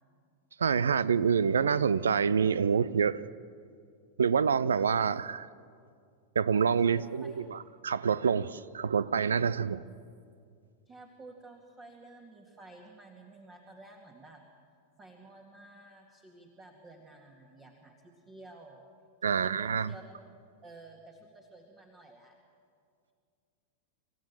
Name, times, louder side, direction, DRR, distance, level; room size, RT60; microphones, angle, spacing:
voice 1, 0.6-3.2 4.2-5.5 6.4-7.6 7.8-9.8 19.2-19.9, right 6 dB, 70° right, 0.6 m, -27 dB
voice 2, 6.8-7.4 9.8-9.9 10.9-14.4 15.0-18.8 19.2-20.0 20.6-22.3, right 2 dB, 20° right, 2.1 m, -52 dB
26.5 x 14.5 x 7.5 m
figure-of-eight pair, 90°, 0 cm